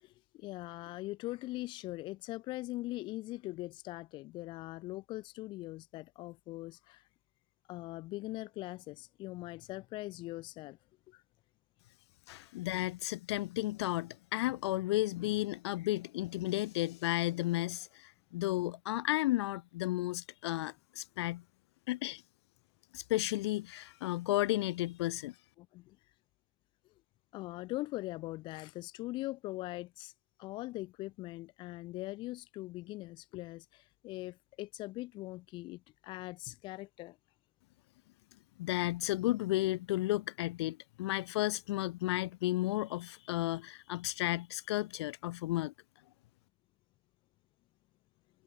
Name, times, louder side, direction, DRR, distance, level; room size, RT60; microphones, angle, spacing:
voice 1, 0.0-7.0 7.7-10.8 11.1-11.2 25.6-26.0 27.3-30.1 30.4-37.2, left 18 dB, 30° left, 1.2 m, -41 dB
voice 2, 12.3-21.4 21.9-22.2 22.9-25.3 38.6-45.7, left 17 dB, 60° left, 0.9 m, -33 dB
supercardioid pair, 160°, 16 cm